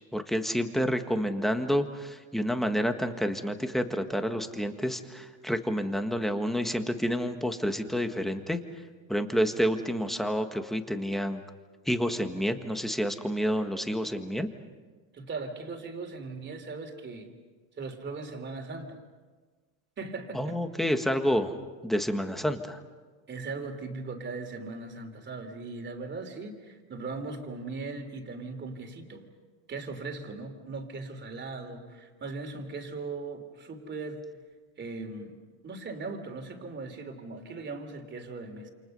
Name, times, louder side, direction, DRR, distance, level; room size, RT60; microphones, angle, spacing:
voice 1, 0.1-8.6 9.1-11.4 11.8-14.5 20.3-21.5 21.8-22.8, equal, ahead, 7 dB, 1.6 m, -29 dB
voice 2, 15.1-17.3 17.8-19.0 20.0-20.6 23.3-29.2 29.7-34.3 34.8-38.7, right 3 dB, 25° right, 5 dB, 3.3 m, -39 dB
28.5 x 28.5 x 5.5 m, 1.4 s
supercardioid pair, 130°, 42 cm